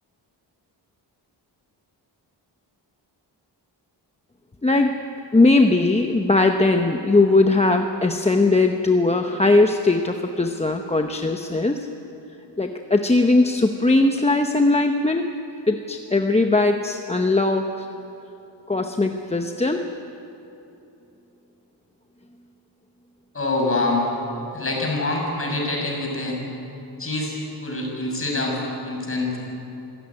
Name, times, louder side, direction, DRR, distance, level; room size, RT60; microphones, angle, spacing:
voice 1, 4.6-5.0 5.3-11.9 12.6-15.3 15.7-17.9 18.7-19.9, left 2 dB, 15° left, 4 dB, 0.8 m, -19 dB
voice 2, 23.3-24.0 24.5-26.4 27.0-28.6 28.8-29.4, left 2 dB, 30° left, -1 dB, 6.2 m, -25 dB
25.0 x 16.5 x 9.6 m, 3.0 s
wide cardioid pair, 155°, 44 cm